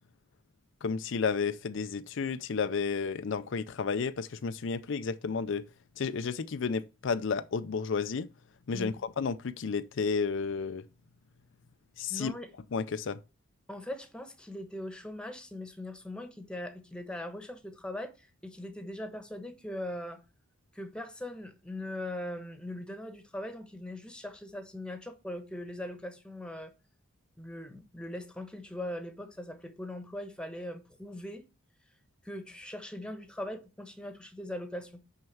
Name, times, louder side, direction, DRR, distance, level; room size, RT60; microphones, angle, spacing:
voice 1, 0.8-5.6 6.0-8.3 8.7-10.8 12.0-12.3 12.7-13.2, left 5 dB, 60° left, 0.5 m, -32 dB
voice 2, 12.1-12.5 13.7-20.2 20.7-26.7 27.4-31.4 32.2-35.0, left 1 dB, 5° left, 1.2 m, -40 dB
6.3 x 5.8 x 7.0 m
head